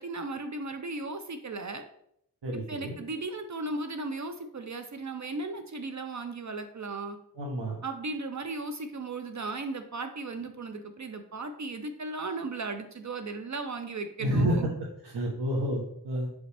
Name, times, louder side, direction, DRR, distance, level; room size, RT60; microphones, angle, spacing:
voice 1, 0.0-1.8 2.7-7.2 7.8-14.7, right 3 dB, 45° right, 7 dB, 0.5 m, -36 dB
voice 2, 2.4-3.0 7.4-7.8 14.2-14.6 15.0-16.3, right 1 dB, 85° right, -3 dB, 1.2 m, -29 dB
6.2 x 5.1 x 3.4 m, 0.73 s
wide cardioid pair, 125°, 40 cm